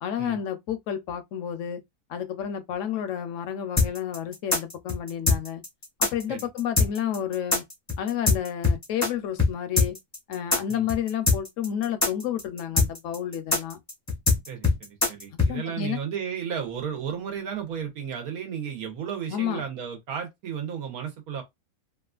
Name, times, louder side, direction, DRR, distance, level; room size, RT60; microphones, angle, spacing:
voice 1, 0.0-1.8 2.1-5.6 6.0-7.6 8.0-10.0 10.3-13.8 15.5-16.0 19.3-19.6, left 9 dB, 70° left, 0.8 m, -30 dB
sound 1, 3.8-9.1 9.4-9.5 9.8-15.5, left 3 dB, 20° left, 0.4 m, -22 dB
voice 2, 14.5-21.4, right 8 dB, 80° right, 1.3 m, -33 dB
2.9 x 2.4 x 2.4 m
omnidirectional pair, 1.5 m